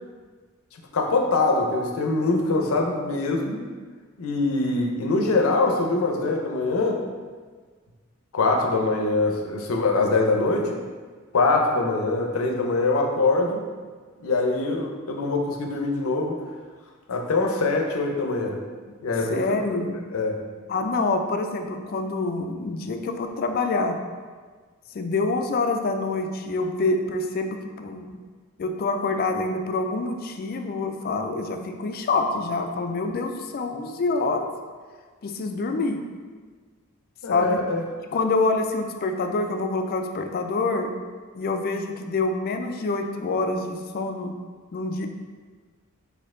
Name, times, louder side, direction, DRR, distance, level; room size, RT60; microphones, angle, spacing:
voice 1, 0.9-3.6 4.2-7.0 8.3-10.8 11.3-13.6 14.2-16.3 17.1-18.6 19.0-19.4 20.1-20.4 37.2-37.8, left 3 dB, 90° left, 2 dB, 0.6 m, -23 dB
voice 2, 19.3-20.0 20.7-24.0 24.9-28.1 28.6-34.5 35.2-36.0 37.3-37.6 38.1-40.9 41.3-44.3 44.7-45.1, left 3 dB, 45° left, 5 dB, 0.3 m, -26 dB
4.3 x 2.7 x 3.6 m, 1.5 s
head